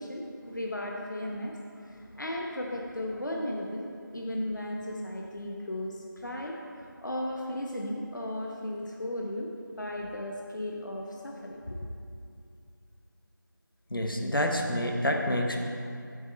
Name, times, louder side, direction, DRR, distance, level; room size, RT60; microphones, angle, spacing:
voice 1, 0.0-1.6 1.9-3.9 4.1-6.5 7.0-9.5 9.8-11.8, left 1 dB, 60° left, 0 dB, 0.9 m, -35 dB
voice 2, 13.9-15.6, left 1 dB, 90° left, 2 dB, 1.3 m, -28 dB
8.6 x 7.4 x 4.2 m, 2.5 s
figure-of-eight pair, 175°, 11 cm